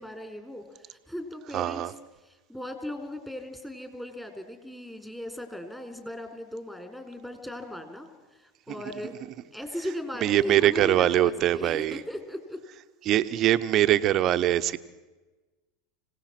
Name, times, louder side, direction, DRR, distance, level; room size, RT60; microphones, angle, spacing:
voice 1, 0.0-1.8 2.2-9.2 9.5-12.6, left 1 dB, 5° left, 6 dB, 4.0 m, -38 dB
voice 2, 1.5-1.9 10.2-12.0 13.0-14.8, right 13 dB, 45° right, 12 dB, 1.0 m, -23 dB
26.0 x 17.5 x 6.0 m, 1.2 s
hypercardioid pair, 90°, 0 cm